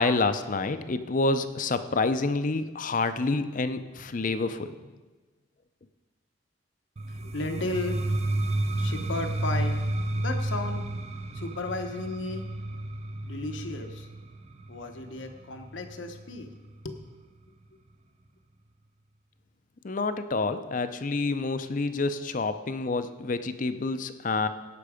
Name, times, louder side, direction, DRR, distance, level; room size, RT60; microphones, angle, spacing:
voice 1, 0.0-4.7 19.8-24.5, left 3 dB, 45° left, 11 dB, 0.5 m, -28 dB
sound 1, 7.0-16.7, right 1 dB, 35° right, 0.6 m, -31 dB
voice 2, 7.2-8.0 8.8-9.8 10.1-10.9 11.3-12.5 13.2-14.1 14.7-16.5 16.8-17.0, left 2 dB, 80° left, 5 dB, 1.1 m, -34 dB
16.5 x 6.0 x 5.0 m, 1.3 s
head